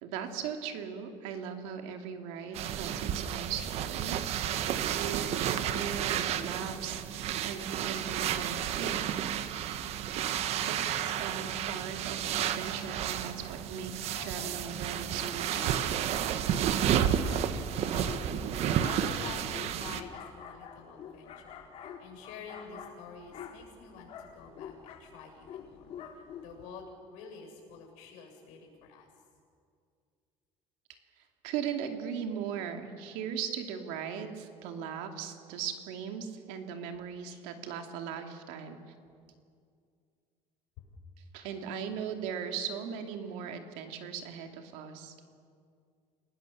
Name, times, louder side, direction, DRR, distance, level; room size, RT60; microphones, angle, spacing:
voice 1, 0.0-9.2 10.7-15.8 31.4-38.8 41.3-45.1, right 7 dB, 90° right, 5 dB, 2.7 m, -39 dB
sound 1, 2.5-20.0, right 9 dB, 55° right, 1.3 m, -31 dB
sound 2, 14.1-26.7, left 8 dB, 50° left, 2.5 m, -47 dB
voice 2, 17.9-21.5 22.0-25.9 26.4-29.1 40.8-40.9, left 5 dB, 85° left, 3 dB, 7.5 m, -48 dB
29.5 x 19.0 x 7.2 m, 2.3 s
cardioid pair, 145°, 13 cm